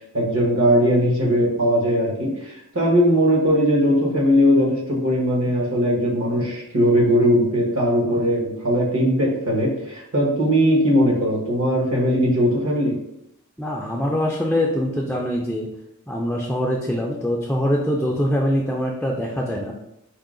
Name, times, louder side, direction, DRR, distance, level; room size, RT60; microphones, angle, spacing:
voice 1, 0.1-13.0, equal, 70° right, -2 dB, 1.2 m, -19 dB
voice 2, 13.6-15.7 16.1-19.7, equal, 5° left, -2 dB, 0.3 m, -23 dB
4.6 x 2.1 x 3.7 m, 0.84 s
head